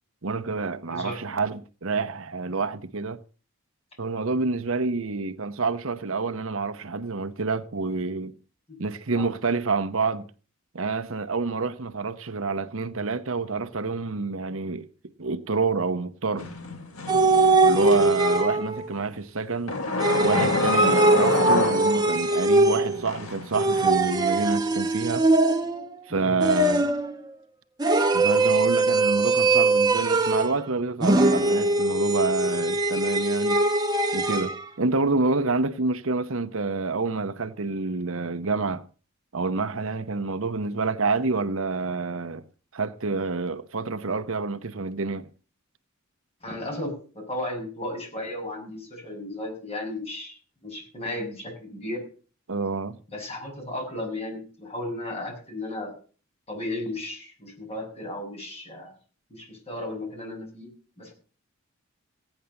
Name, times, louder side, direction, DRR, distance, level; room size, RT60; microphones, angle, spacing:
voice 1, 0.2-3.2 4.0-8.3 8.8-10.3 10.7-14.9 15.2-16.5 17.6-19.8 20.2-25.3 26.1-26.9 28.1-33.6 34.1-38.8 39.3-42.4 42.7-45.3 52.5-53.0, right 4 dB, 70° right, 0.9 m, -28 dB
sound 1, 16.4-18.4 19.7-22.3 22.8-23.9, left 2 dB, 80° left, 3.0 m, -28 dB
sound 2, 17.1-18.8 20.0-23.1 23.5-25.9 26.4-27.1 27.8-30.6 31.0-34.5, right 2 dB, 20° right, 1.5 m, -21 dB
voice 2, 26.1-26.4 46.4-52.0 53.1-55.9 56.5-58.9 59.3-60.7 61.0-61.1, left 1 dB, 30° left, 6.9 m, -35 dB
16.0 x 10.0 x 7.0 m
head